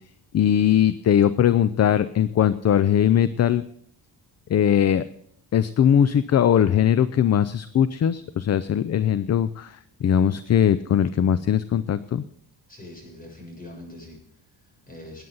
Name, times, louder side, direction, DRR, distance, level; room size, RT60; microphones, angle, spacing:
voice 1, 0.3-3.6 4.5-5.0 5.5-12.2, left 9 dB, 40° left, 15 dB, 0.5 m, -20 dB
voice 2, 12.7-15.2, left 1 dB, 20° left, 0 dB, 7.1 m, -43 dB
20.0 x 9.3 x 4.0 m, 0.70 s
cardioid pair, 125°, 41 cm